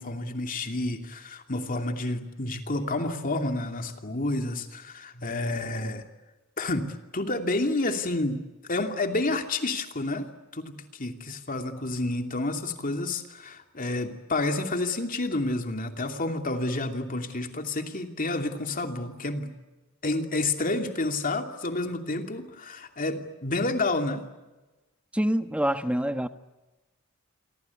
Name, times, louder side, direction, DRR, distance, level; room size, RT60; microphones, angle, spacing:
voice 1, 0.0-6.0 6.6-8.4 8.7-19.5 20.0-24.2, left 2 dB, 40° left, 2.7 m, -29 dB
voice 2, 25.1-26.3, equal, 5° right, 1.3 m, -26 dB
28.5 x 24.0 x 8.4 m
head